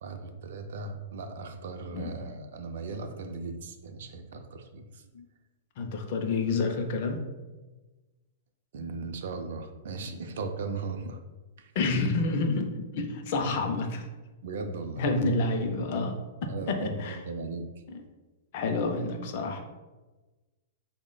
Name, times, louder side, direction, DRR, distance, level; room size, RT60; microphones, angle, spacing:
voice 1, 0.0-5.0 8.7-11.2 11.6-11.7 14.4-15.0 16.5-17.7, right 3 dB, 55° right, 6 dB, 0.4 m, -37 dB
voice 2, 5.8-7.2 11.8-14.0 15.0-17.2 17.9-18.0 18.5-19.6, left 3 dB, 40° left, 5 dB, 0.4 m, -29 dB
3.8 x 2.1 x 3.7 m, 1.2 s
supercardioid pair, 175°, 0 cm